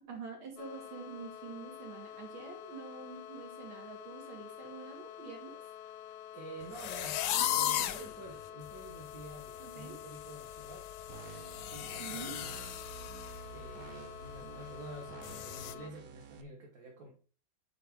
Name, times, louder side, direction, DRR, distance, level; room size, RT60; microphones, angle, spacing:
voice 1, 0.1-5.6 9.6-10.0 12.0-12.3, right 5 dB, 85° right, 1 dB, 2.6 m, -46 dB
sound 1, 0.6-15.9, left 11 dB, 90° left, 1.4 m, -48 dB
voice 2, 6.3-7.2 7.5-10.9 11.7-12.5 13.5-17.1, right 2 dB, 50° right, -2 dB, 1.7 m, -49 dB
sound 2, 6.7-8.1 8.7-8.8 9.2-9.4 9.7-13.4 13.7-13.9 14.3-14.4 15.2-15.7, left 12 dB, 75° left, 1.0 m, -36 dB
sound 3, 11.1-16.4, right 7 dB, 70° right, 0.8 m, -50 dB
8.2 x 4.3 x 3.6 m, 0.39 s
omnidirectional pair, 2.2 m